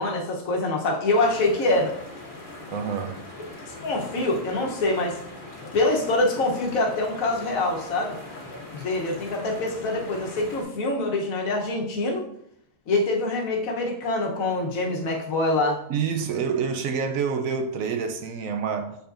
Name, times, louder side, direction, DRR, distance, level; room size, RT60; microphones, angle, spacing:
voice 1, 0.0-1.9 3.8-5.2 5.7-8.2 8.7-12.2 12.9-15.8, left 2 dB, 65° left, 1 dB, 1.4 m, -25 dB
sound 1, 1.2-10.6, left 2 dB, 35° left, 1.1 m, -41 dB
voice 2, 2.7-3.2 15.9-19.0, right 6 dB, 70° right, 5 dB, 1.0 m, -27 dB
6.9 x 5.3 x 2.5 m, 0.73 s
omnidirectional pair, 1.6 m